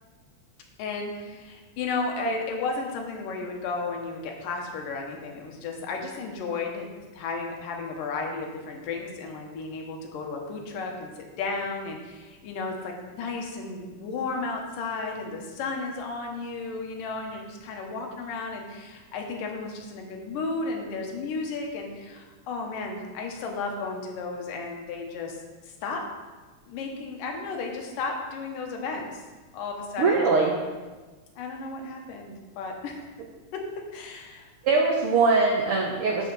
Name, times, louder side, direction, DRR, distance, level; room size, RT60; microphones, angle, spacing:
voice 1, 0.8-6.9 7.1-25.4 25.6-26.0 26.7-29.1 29.5-30.6 31.4-33.1 33.9-34.5, left 3 dB, 85° left, 2 dB, 2.8 m, -33 dB
voice 2, 30.0-30.5 34.6-36.3, right 4 dB, 85° right, 0 dB, 1.2 m, -22 dB
12.0 x 5.5 x 4.1 m, 1.3 s
omnidirectional pair, 3.8 m